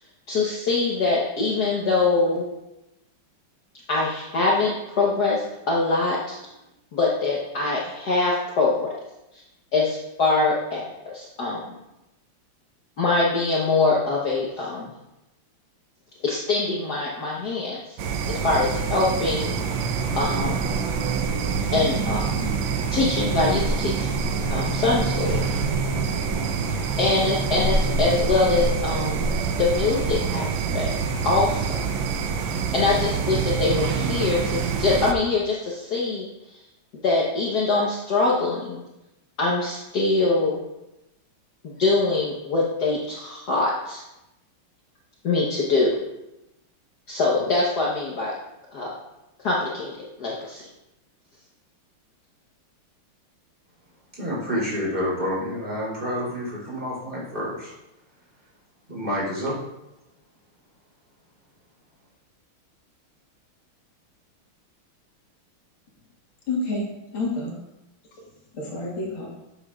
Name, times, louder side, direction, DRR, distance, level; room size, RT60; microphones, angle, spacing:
voice 1, 0.3-2.5 3.9-6.4 6.9-8.9 9.7-11.6 13.0-14.9 16.2-18.0 18.3-19.5 20.2-20.7 21.7-22.2 22.9-24.1 24.5-25.4 27.0-30.9 31.2-31.8 32.7-36.3 37.0-38.8 39.4-40.6 41.6-44.0 45.2-46.0 47.1-48.3 48.7-48.9 49.4-50.6, left 3 dB, 55° left, -4 dB, 1.5 m, -23 dB
sound 1, 18.0-35.1, right 5 dB, 70° right, 1.5 m, -25 dB
voice 2, 54.1-57.7 58.9-59.6, equal, 25° right, -6 dB, 3.6 m, -28 dB
voice 3, 66.5-67.6 68.5-69.3, left 2 dB, 75° left, -2 dB, 2.5 m, -29 dB
12.0 x 7.9 x 2.4 m, 0.93 s
omnidirectional pair, 2.3 m